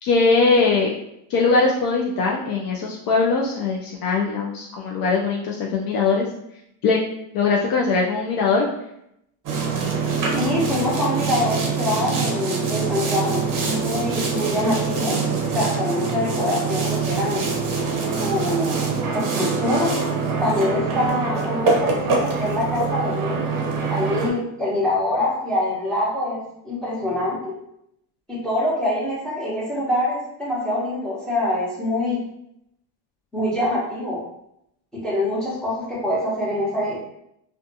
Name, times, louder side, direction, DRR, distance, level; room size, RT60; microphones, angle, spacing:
voice 1, 0.0-0.9 1.3-6.3 6.8-7.0 7.3-8.7, left 4 dB, 55° left, -1 dB, 0.5 m, -21 dB
Boat Water vehicle, 9.4-24.3, right 4 dB, 50° right, 0.7 m, -24 dB
voice 2, 10.3-15.2 15.4-17.5 18.2-18.8 19.1-20.0 20.4-23.6 23.9-27.6 28.3-32.2 33.3-34.2 34.9-37.0, left 1 dB, ahead, -7 dB, 0.9 m, -25 dB
2.4 x 2.3 x 2.6 m, 0.78 s
supercardioid pair, 110°, 44 cm